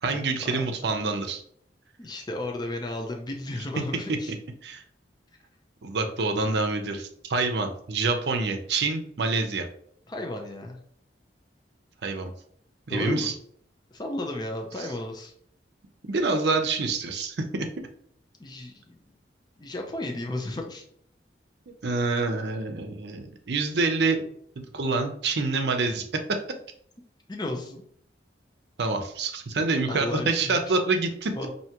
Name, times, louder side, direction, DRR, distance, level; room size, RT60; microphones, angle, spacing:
voice 1, 0.0-1.4 4.6-4.8 5.8-9.7 12.0-12.3 12.9-13.3 14.8-14.9 16.1-17.7 21.8-24.2 24.6-26.0 28.8-31.3, right 3 dB, 65° right, 5 dB, 0.6 m, -26 dB
voice 2, 2.0-4.3 10.1-10.8 12.9-13.3 13.9-15.3 18.4-19.0 19.6-20.8 27.3-27.8 29.9-30.6 31.4-31.5, left 2 dB, 25° left, 2 dB, 0.5 m, -33 dB
4.6 x 2.7 x 2.9 m, 0.64 s
head